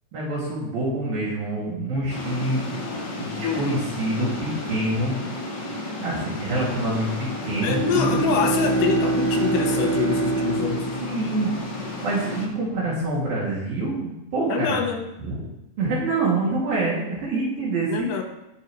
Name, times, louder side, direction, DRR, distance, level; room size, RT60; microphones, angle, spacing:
voice 1, 0.1-2.7 3.2-5.1 6.0-8.3 11.0-11.5 12.0-14.8 15.2-15.4 15.8-18.2, right 2 dB, 60° right, -6 dB, 4.1 m, -26 dB
sound 1, 2.1-12.5, left 2 dB, 35° left, 2.0 m, -33 dB
voice 2, 3.4-3.8 7.6-10.9 14.5-15.1 17.9-18.2, left 7 dB, 75° left, 4 dB, 3.0 m, -25 dB
Bowed string instrument, 7.3-12.1, right 4 dB, 30° right, 4.4 m, -25 dB
20.5 x 7.2 x 3.2 m, 0.95 s
omnidirectional pair, 5.0 m